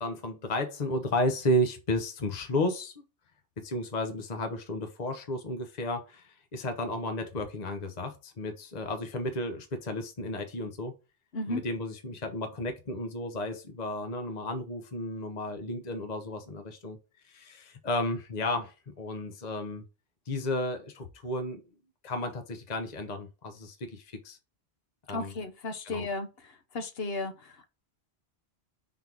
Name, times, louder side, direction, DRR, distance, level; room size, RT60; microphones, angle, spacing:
voice 1, 0.0-2.9 3.6-10.9 11.5-17.0 17.3-19.8 20.3-21.6 22.0-24.4 25.1-25.3 25.9-26.1, left 1 dB, 45° left, 1.0 m, -33 dB
voice 2, 25.1-27.7, left 2 dB, 65° left, 1.2 m, -35 dB
5.4 x 4.0 x 4.6 m
omnidirectional pair, 1.1 m